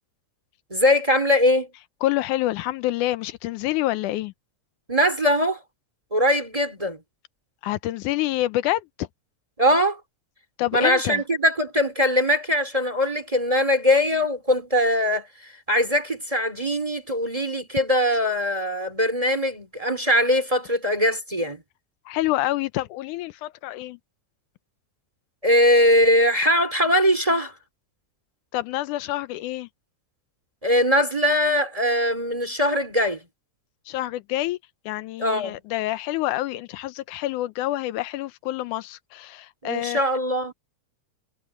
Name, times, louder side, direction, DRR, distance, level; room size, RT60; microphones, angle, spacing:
voice 1, 0.7-1.7 4.9-5.6 6.1-7.0 9.6-10.0 10.7-15.3 15.7-21.6 25.4-27.5 30.6-33.2 35.2-35.6 39.6-40.5, left 1 dB, 10° right, 2.5 m, -21 dB
voice 2, 2.0-4.3 7.6-9.1 10.6-11.2 22.1-24.0 28.5-29.7 33.9-34.6 34.9-40.1, left 16 dB, 85° left, 2.2 m, -27 dB
omnidirectional pair, 3.5 m